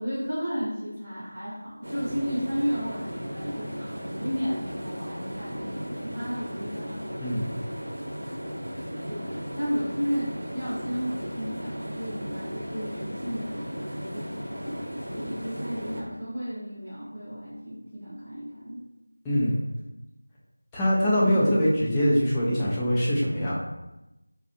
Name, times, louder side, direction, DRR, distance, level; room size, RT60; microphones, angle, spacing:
voice 1, 0.0-7.0 9.1-18.8 21.2-21.6, equal, 15° right, -18 dB, 0.9 m, -33 dB
sound 1, 1.8-16.0, equal, 65° right, 0.7 m, -36 dB
voice 2, 7.2-7.5 19.2-19.6 20.7-23.5, equal, 10° left, -8 dB, 0.4 m, -23 dB
2.5 x 2.3 x 2.6 m, 0.95 s
figure-of-eight pair, 170°, 0 cm